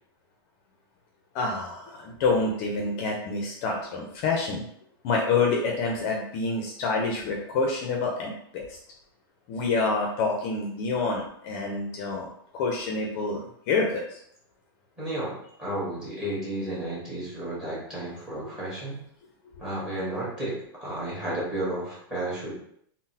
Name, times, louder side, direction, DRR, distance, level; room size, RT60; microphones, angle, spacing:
voice 1, 1.3-4.6 5.0-8.6 9.5-12.3 12.5-14.2, left 3 dB, 40° left, 0 dB, 0.5 m, -27 dB
voice 2, 15.0-19.0 19.6-22.6, right 1 dB, 5° right, -6 dB, 1.4 m, -32 dB
3.8 x 2.0 x 2.7 m, 0.68 s
supercardioid pair, 155°, 13 cm